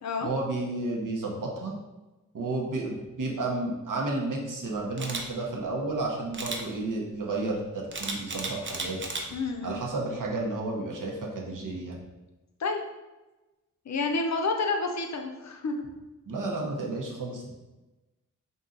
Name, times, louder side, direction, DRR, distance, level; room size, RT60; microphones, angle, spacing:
voice 1, 0.2-1.7 2.3-9.0 9.6-12.0 16.3-17.5, right 2 dB, 70° right, -1 dB, 0.9 m, -32 dB
Camera, 5.0-5.2 6.3-6.6 7.9-9.2 9.7-10.0, right 3 dB, 35° right, 0.5 m, -33 dB
voice 2, 9.3-9.8 12.6-12.8 13.9-15.7, left 3 dB, 55° left, 4 dB, 0.6 m, -29 dB
3.9 x 2.7 x 3.7 m, 1.1 s
wide cardioid pair, 140°, 32 cm